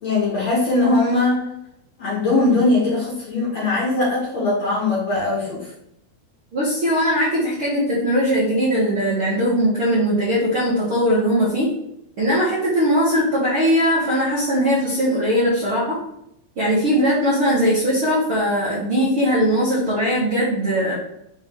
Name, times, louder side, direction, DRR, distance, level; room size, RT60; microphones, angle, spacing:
voice 1, 0.0-1.4 2.0-5.7, left 2 dB, 50° left, -7 dB, 2.5 m, -20 dB
voice 2, 6.5-11.7 12.2-16.0 16.6-20.9, equal, 45° right, -10 dB, 1.8 m, -20 dB
6.5 x 4.2 x 3.8 m, 0.77 s
omnidirectional pair, 5.0 m